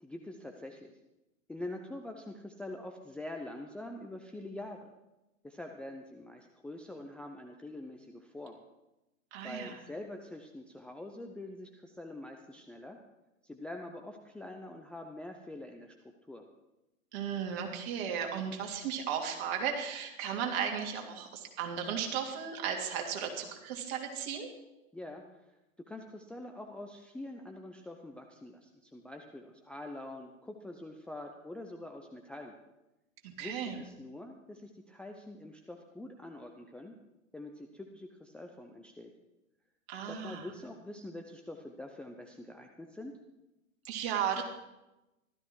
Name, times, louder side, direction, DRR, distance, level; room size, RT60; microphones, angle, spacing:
voice 1, 0.0-0.9 1.5-4.9 5.4-8.6 9.4-13.0 13.4-15.9 16.3-16.5 24.9-25.5 25.9-32.6 33.4-36.9 37.3-39.1 40.0-43.1, left 1 dB, 5° left, 3 dB, 0.6 m, -45 dB
voice 2, 9.3-9.8 17.1-24.5 33.2-33.8 39.9-40.5 43.8-44.4, right 8 dB, 45° right, 2 dB, 3.1 m, -35 dB
15.5 x 13.0 x 4.7 m, 0.98 s
hypercardioid pair, 120°, 41 cm